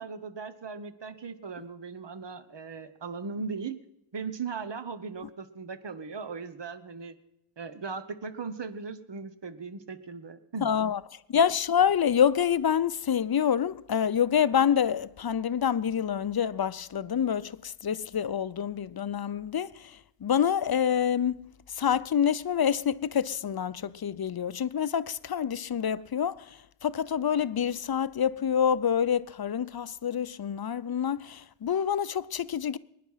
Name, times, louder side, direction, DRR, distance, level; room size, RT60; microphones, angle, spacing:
voice 1, 0.0-3.8 4.1-7.2 7.6-10.7, right 5 dB, 60° right, 1.2 m, -38 dB
voice 2, 10.6-11.0 11.3-21.5 21.8-26.5 26.8-32.8, left 8 dB, 50° left, 0.6 m, -27 dB
22.0 x 10.0 x 5.6 m
wide cardioid pair, 55°, 47 cm